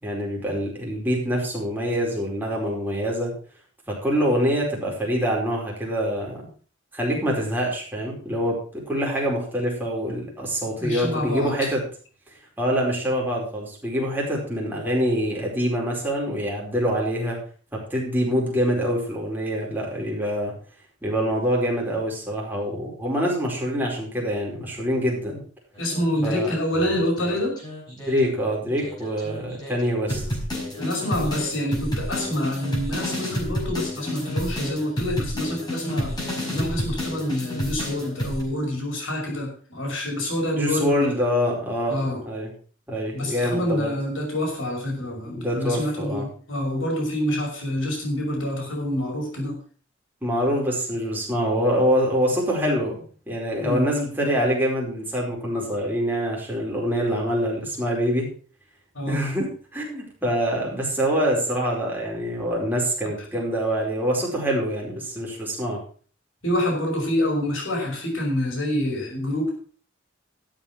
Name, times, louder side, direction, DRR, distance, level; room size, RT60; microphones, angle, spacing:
voice 1, 0.0-3.3 3.9-6.5 6.9-11.8 12.6-17.4 17.7-20.5 21.0-25.4 26.2-26.5 28.1-30.2 40.5-42.0 42.3-42.5 42.9-43.9 45.2-46.3 50.2-58.3 59.1-65.8, equal, 10° right, -3 dB, 4.7 m, -25 dB
voice 2, 10.8-11.7 25.8-27.6 30.8-41.2 41.9-42.2 43.1-49.6 53.6-53.9 58.9-59.2 66.4-69.6, left 1 dB, 85° left, 0 dB, 5.8 m, -27 dB
sound 1, 25.8-28.3 28.8-38.4, equal, 20° left, 5.4 m, -30 dB
12.5 x 8.0 x 5.9 m, 0.42 s
head